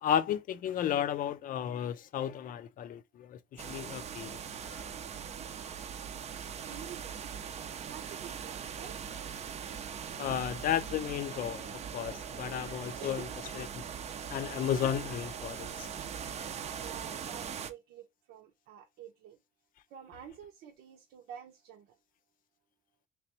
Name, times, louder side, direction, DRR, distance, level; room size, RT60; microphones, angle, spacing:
voice 1, 0.0-4.4 4.7-4.8 10.2-13.3 13.5-13.8 14.3-15.9, left 9 dB, 55° left, 0.5 m, -33 dB
sound 1, 3.6-17.7, right 7 dB, 40° right, 0.5 m, -41 dB
voice 2, 6.7-7.1 7.9-9.1 10.3-10.4 13.0-13.3 16.8-19.4 19.9-22.0, right 9 dB, 80° right, 0.8 m, -49 dB
3.4 x 3.0 x 2.9 m
cardioid pair, 110°, 17 cm